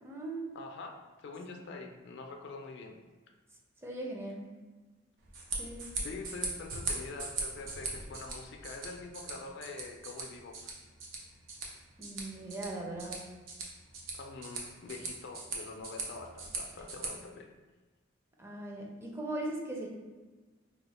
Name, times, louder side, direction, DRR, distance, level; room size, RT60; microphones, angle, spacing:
voice 1, 0.0-0.4 3.8-4.5 5.6-5.9 12.0-13.2 18.4-19.9, right 2 dB, 15° right, -2 dB, 0.4 m, -39 dB
voice 2, 0.5-2.9 6.0-10.8 14.1-17.5, left 3 dB, 60° left, 3 dB, 0.4 m, -45 dB
sound 1, 5.2-17.1, right 3 dB, 85° right, 0.7 m, -41 dB
2.9 x 2.0 x 4.1 m, 1.3 s
head